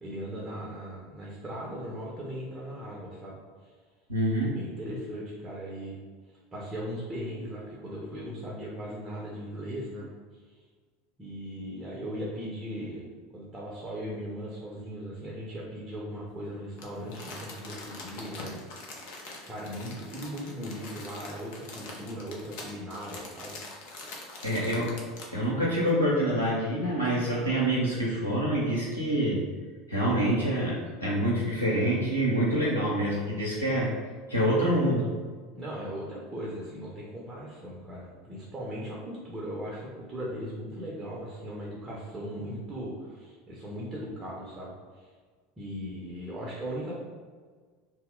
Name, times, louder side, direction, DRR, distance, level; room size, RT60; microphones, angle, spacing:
voice 1, 0.0-3.4 3.6-3.7 4.5-6.0 6.5-10.1 10.3-10.5 11.2-13.0 13.3-18.6 18.9-19.1 19.5-23.6 35.5-45.1 45.6-47.0, equal, 20° right, -4 dB, 0.7 m, -38 dB
voice 2, 4.1-4.6 24.4-25.0 25.3-29.4 29.9-33.9 34.3-35.1, right 1 dB, 85° right, -5 dB, 0.5 m, -26 dB
Crumpling crinkling, 16.8-25.4 25.9-26.0, left 2 dB, 55° left, 0.6 m, -44 dB
2.8 x 2.0 x 3.7 m, 1.5 s
figure-of-eight pair, 75°, 0 cm